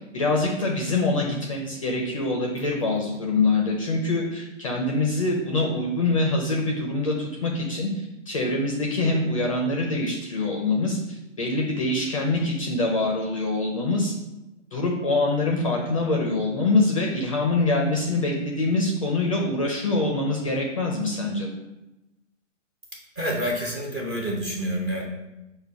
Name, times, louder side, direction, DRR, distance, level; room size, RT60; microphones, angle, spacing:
voice 1, 0.1-14.1 14.7-21.5, left 2 dB, 30° left, 0 dB, 0.4 m, -24 dB
voice 2, 23.2-25.1, equal, 15° right, -3 dB, 0.6 m, -28 dB
5.2 x 2.2 x 4.6 m, 0.97 s
hypercardioid pair, 150°, 38 cm